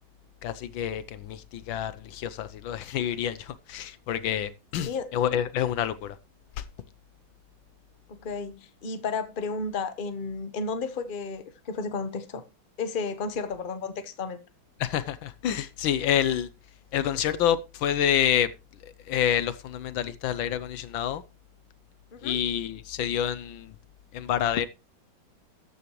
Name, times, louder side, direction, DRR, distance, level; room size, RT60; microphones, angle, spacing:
voice 1, 0.4-6.1 6.6-6.7 14.8-16.5 16.9-18.5 19.1-21.2 22.2-23.7 24.1-24.7, left 10 dB, 75° left, 1.5 m, -28 dB
voice 2, 8.1-12.4 12.8-14.4 22.1-22.4, left 4 dB, 30° left, 1.0 m, -33 dB
13.5 x 9.7 x 3.1 m
omnidirectional pair, 2.2 m